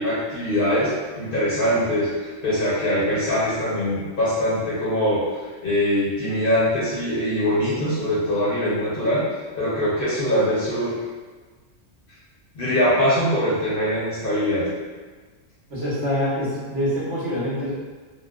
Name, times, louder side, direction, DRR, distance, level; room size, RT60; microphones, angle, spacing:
voice 1, 0.0-5.2 5.6-9.2 9.6-10.9 12.5-14.7, equal, 50° left, -8 dB, 0.9 m, -22 dB
voice 2, 15.7-17.7, equal, 65° right, -11 dB, 1.6 m, -25 dB
3.9 x 2.2 x 2.4 m, 1.4 s
omnidirectional pair, 1.3 m